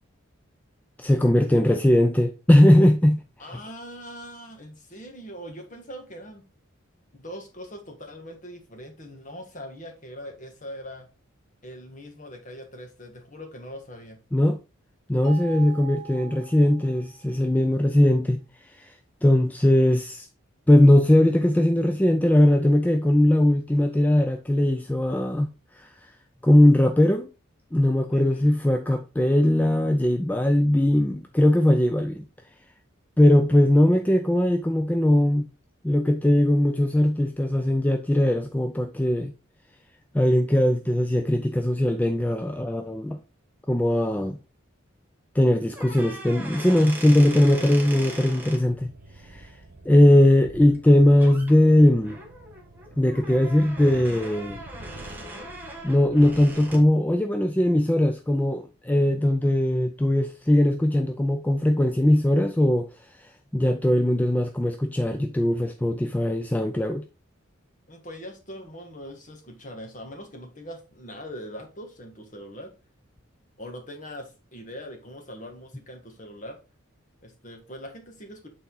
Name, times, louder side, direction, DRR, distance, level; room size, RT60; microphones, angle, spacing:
voice 1, 1.0-3.2 14.3-14.6 15.1-18.9 19.2-20.3 20.7-26.1 26.4-27.3 27.7-32.3 33.2-35.5 35.8-39.3 40.1-43.2 43.7-44.4 45.3-49.6 49.9-52.2 53.0-54.6 55.8-67.0, left 1 dB, 10° left, 0.3 m, -20 dB
voice 2, 3.4-6.5 7.1-11.1 11.6-14.2 28.1-28.5 67.9-72.7 73.6-76.6 77.2-78.5, equal, 35° left, 1.8 m, -41 dB
sound 1, 15.2-17.5, right 11 dB, 65° left, 2.1 m, -43 dB
sound 2, 45.7-48.6 50.7-50.9 51.2-51.5 52.0-56.9, right 1 dB, 10° right, 1.3 m, -40 dB
sound 3, 48.6-56.8, right 2 dB, 65° right, 1.0 m, -47 dB
8.4 x 4.1 x 3.8 m
head